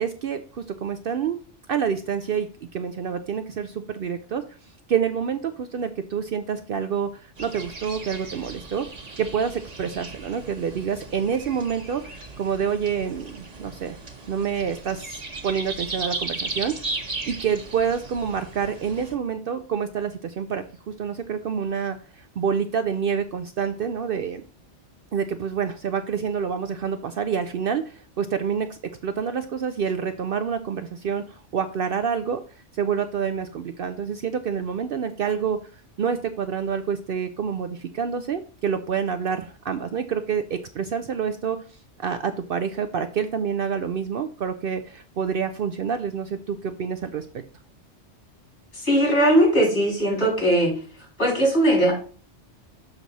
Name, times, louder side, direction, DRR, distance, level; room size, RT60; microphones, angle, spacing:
voice 1, 0.0-1.4 1.7-4.4 4.9-8.9 9.2-14.0 14.3-16.8 17.3-24.4 25.1-32.4 32.7-35.6 36.0-41.6 42.0-47.3, right 7 dB, 60° right, 9 dB, 0.7 m, -27 dB
sound 1, 7.4-19.2, right 3 dB, 35° right, 1.2 m, -36 dB
voice 2, 48.8-50.7 51.2-51.9, right 1 dB, 65° left, -2 dB, 4.3 m, -19 dB
6.6 x 6.1 x 4.0 m, 0.40 s
omnidirectional pair, 1.2 m